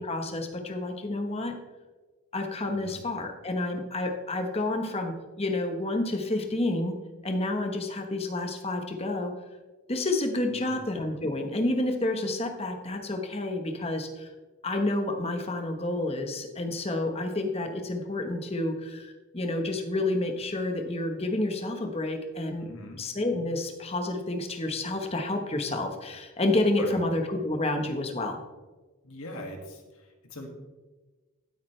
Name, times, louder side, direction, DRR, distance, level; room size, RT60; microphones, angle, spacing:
voice 1, 0.0-1.6 2.3-7.0 7.2-9.3 9.9-14.3 14.6-22.7 23.0-28.4, left 2 dB, 25° left, 4 dB, 1.1 m, -29 dB
voice 2, 2.6-3.0 10.5-10.8 22.6-23.0 26.8-26.9 29.0-30.5, left 1 dB, 75° left, 3 dB, 2.1 m, -42 dB
15.5 x 8.8 x 3.3 m, 1.2 s
head